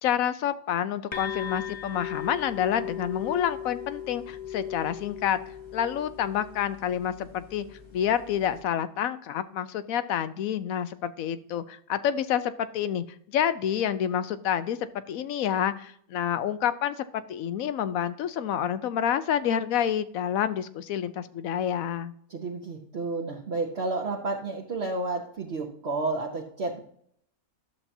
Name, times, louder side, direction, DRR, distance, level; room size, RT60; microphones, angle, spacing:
voice 1, 0.0-5.4 5.7-7.6 7.9-13.0 13.3-14.8 15.1-22.1, left 9 dB, 75° left, 13 dB, 1.1 m, -28 dB
sound 1, 1.1-8.6, left 9 dB, 25° left, 0.8 m, -38 dB
voice 2, 22.3-26.8, right 3 dB, 50° right, 0 dB, 1.2 m, -31 dB
12.0 x 7.3 x 2.7 m, 0.65 s
omnidirectional pair, 1.5 m